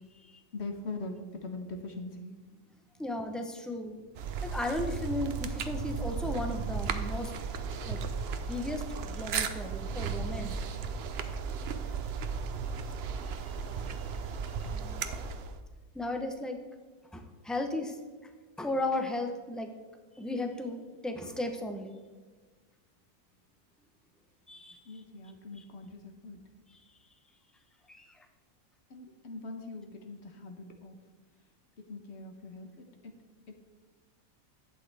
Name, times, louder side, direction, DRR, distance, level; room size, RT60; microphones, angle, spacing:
voice 1, 0.5-2.3 13.7-14.0 24.8-26.4 28.9-31.0 31.8-33.1 33.5-33.6, left 3 dB, 55° left, 4 dB, 1.2 m, -42 dB
voice 2, 3.0-4.0 4.4-7.3 7.9-8.0 8.4-10.6 13.5-13.6 13.9-14.1 14.6-15.0 15.9-16.6 17.1-18.0 18.6-19.7 20.1-22.0 24.5-25.0 25.6-25.7 26.7-26.8 27.9-28.2, left 2 dB, ahead, 5 dB, 0.5 m, -35 dB
sound 1, 4.2-15.6, right 5 dB, 60° right, 0.8 m, -35 dB
11.5 x 8.5 x 3.4 m, 1.4 s
omnidirectional pair, 1.5 m